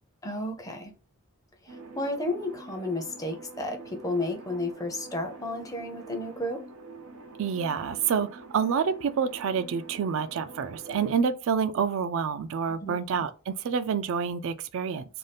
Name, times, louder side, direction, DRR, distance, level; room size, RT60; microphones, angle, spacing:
voice 1, 0.2-0.9 1.6-6.6 12.8-13.0, left 1 dB, 15° left, 0.5 m, -32 dB
sound 1, 1.7-11.2, right 3 dB, 80° right, 0.7 m, -46 dB
voice 2, 7.4-15.0, right 6 dB, 60° right, 0.3 m, -28 dB
2.6 x 2.3 x 3.3 m
head